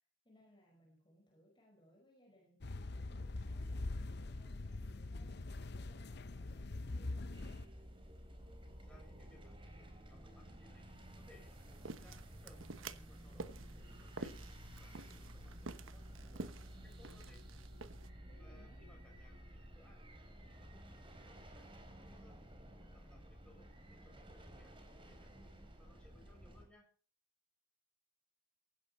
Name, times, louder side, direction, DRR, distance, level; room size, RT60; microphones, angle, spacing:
voice 1, 0.0-7.7 18.2-18.9, equal, 25° left, -1 dB, 5.3 m, -66 dB
sound 1, 2.6-7.7, left 2 dB, 55° left, 0.7 m, -43 dB
sound 2, 7.3-26.7, equal, 25° right, 3.9 m, -54 dB
voice 2, 8.8-10.8 11.1-12.6 13.0-14.3 14.8-16.0 16.3-17.4 18.4-20.0 20.4-21.7 22.1-22.4 22.8-24.7 25.0-25.5 25.8-26.9, left 2 dB, 5° left, -1 dB, 7.3 m, -66 dB
sound 3, 11.5-18.1, right 3 dB, 85° right, 1.1 m, -50 dB
17.5 x 16.0 x 4.3 m, 0.40 s
head